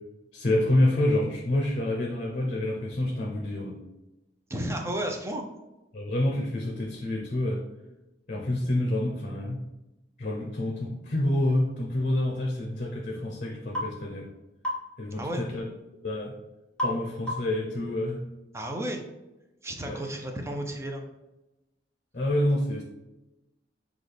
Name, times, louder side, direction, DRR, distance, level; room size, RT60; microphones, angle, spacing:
voice 1, 0.3-3.8 5.9-7.6 8.3-9.6 10.2-14.3 15.0-15.6 16.0-16.3 16.8-18.2 19.9-20.0 22.1-22.8, left 1 dB, 45° left, -1 dB, 0.7 m, -27 dB
voice 2, 4.5-5.4 15.2-15.4 18.5-19.0 19.6-21.1, right 1 dB, 15° right, 3 dB, 0.6 m, -32 dB
sound 1, 13.7-13.9 14.6-14.9 16.8-17.0 17.3-17.6, left 1 dB, 5° left, 1.1 m, -30 dB
5.9 x 2.4 x 3.3 m, 1.0 s
head